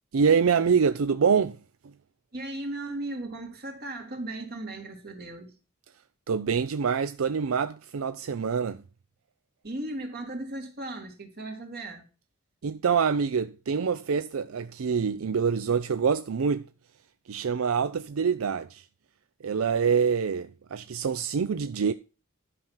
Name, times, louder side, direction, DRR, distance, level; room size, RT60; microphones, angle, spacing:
voice 1, 0.1-1.6 6.3-8.8 12.6-16.6 17.3-18.8 19.4-21.9, right 6 dB, 85° right, 0.5 m, -25 dB
voice 2, 2.3-5.6 9.6-12.1, right 2 dB, 50° right, 2.6 m, -36 dB
11.0 x 6.0 x 5.6 m
head